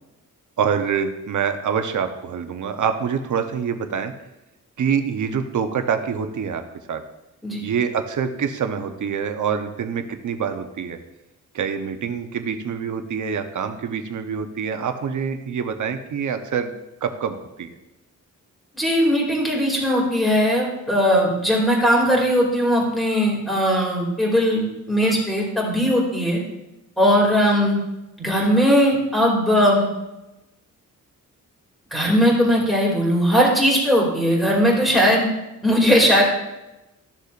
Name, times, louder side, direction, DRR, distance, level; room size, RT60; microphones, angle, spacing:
voice 1, 0.6-4.1 4.8-6.6 6.9-7.0 7.6-11.0 11.5-16.7 17.0-17.8, right 7 dB, 65° right, 7 dB, 0.9 m, -25 dB
voice 2, 18.7-26.4 27.0-27.8 28.2-29.9 31.9-35.3 35.6-36.2, equal, ahead, -3 dB, 2.5 m, -19 dB
13.0 x 6.6 x 2.5 m, 0.96 s
wide cardioid pair, 125°, 32 cm